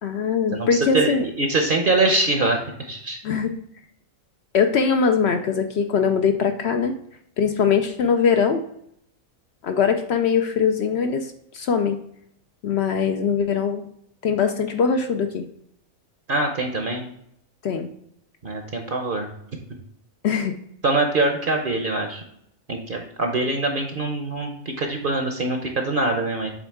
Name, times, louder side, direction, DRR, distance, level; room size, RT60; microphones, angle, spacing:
voice 1, 0.0-1.2 3.2-3.5 4.5-6.9 7.4-8.6 9.6-12.0 12.6-13.8 14.2-15.5 17.6-17.9 20.2-20.5, left 6 dB, 65° left, 6 dB, 0.7 m, -21 dB
voice 2, 0.5-3.2 16.3-17.0 18.4-19.3 20.8-22.2 22.7-26.5, right 2 dB, 50° right, 3 dB, 0.8 m, -23 dB
7.6 x 3.5 x 3.5 m, 0.73 s
omnidirectional pair, 1.4 m